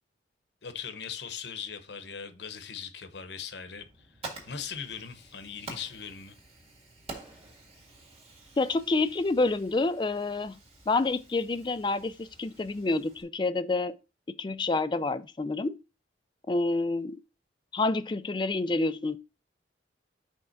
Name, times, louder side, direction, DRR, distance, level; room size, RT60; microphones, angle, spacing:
voice 1, 0.6-4.1 4.5-6.4, left 7 dB, 70° left, 0.9 m, -40 dB
Fire, 3.8-13.2, right 3 dB, 30° right, 1.8 m, -48 dB
voice 2, 8.6-10.6 10.9-13.9 14.4-15.8 16.5-17.2 17.7-19.2, left 3 dB, 25° left, 0.3 m, -28 dB
5.5 x 3.6 x 5.8 m
head